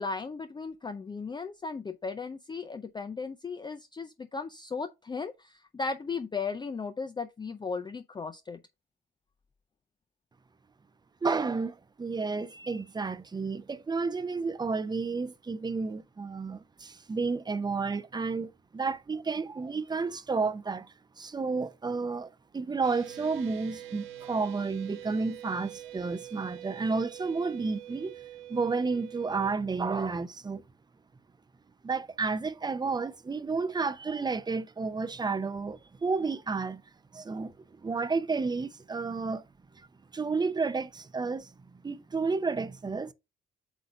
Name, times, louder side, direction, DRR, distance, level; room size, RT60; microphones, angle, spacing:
voice 1, 0.0-8.6, left 4 dB, 20° left, 0.5 m, -36 dB
voice 2, 11.2-28.1 28.5-30.6 31.8-36.8 37.1-39.4 40.1-41.5 41.8-43.1, right 4 dB, 20° right, 0.6 m, -31 dB
sound 1, 22.8-29.5, right 12 dB, 90° right, 1.3 m, -45 dB
7.9 x 2.7 x 4.7 m
cardioid pair, 90°, 20 cm